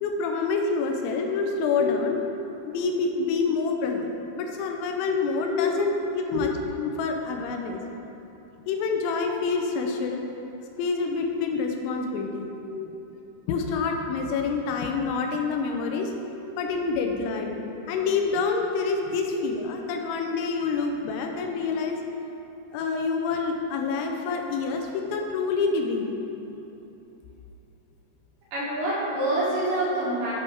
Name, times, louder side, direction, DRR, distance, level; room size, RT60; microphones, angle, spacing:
voice 1, 0.0-2.2 2.7-4.1 4.4-6.5 6.8-7.8 8.7-10.2 10.8-12.5 13.5-16.1 16.6-17.6 17.9-22.0 22.7-26.1, left 4 dB, 85° left, 3 dB, 2.8 m, -27 dB
voice 2, 28.5-30.3, equal, 70° right, -8 dB, 3.6 m, -27 dB
9.8 x 3.4 x 4.5 m, 2.9 s
omnidirectional pair, 5.4 m